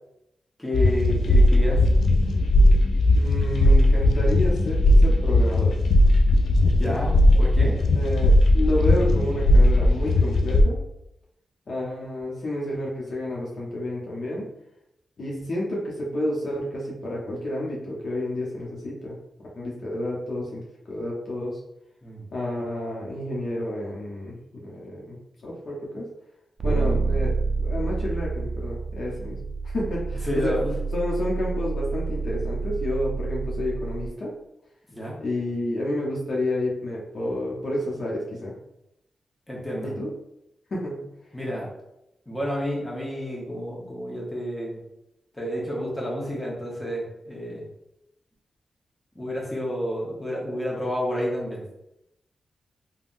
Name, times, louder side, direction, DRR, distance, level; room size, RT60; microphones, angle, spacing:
voice 1, 0.6-1.8 6.7-7.8 22.0-22.2 30.3-30.7 34.9-35.2 39.5-39.9 41.3-41.7 42.3-44.8 45.4-47.7 49.1-51.6, equal, 15° left, -4 dB, 1.0 m, -30 dB
sound 1, 0.7-10.6, left 1 dB, 85° left, 0.3 m, -18 dB
voice 2, 3.1-5.8 7.9-10.8 11.7-14.4 15.2-19.2 19.5-21.6 22.3-26.1 26.6-29.4 29.6-30.6 30.9-34.3 35.2-38.5 39.8-40.1 40.7-41.0, left 1 dB, 65° left, -4 dB, 0.8 m, -30 dB
sound 2, 26.6-34.1, right 4 dB, 55° right, 0.3 m, -28 dB
3.5 x 2.2 x 2.5 m, 0.85 s
cardioid pair, 75°, 0 cm